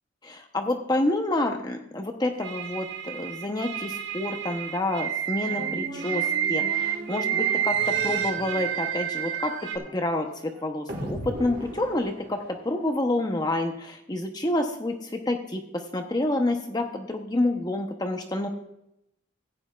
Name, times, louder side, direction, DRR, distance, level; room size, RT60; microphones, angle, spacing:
voice 1, 0.2-18.5, left 1 dB, 20° left, 4 dB, 0.8 m, -28 dB
sound 1, 2.4-9.8, right 9 dB, 65° right, 1.2 m, -29 dB
sound 2, 5.4-12.9, right 1 dB, 45° right, 1.7 m, -39 dB
15.5 x 9.5 x 2.4 m, 0.82 s
head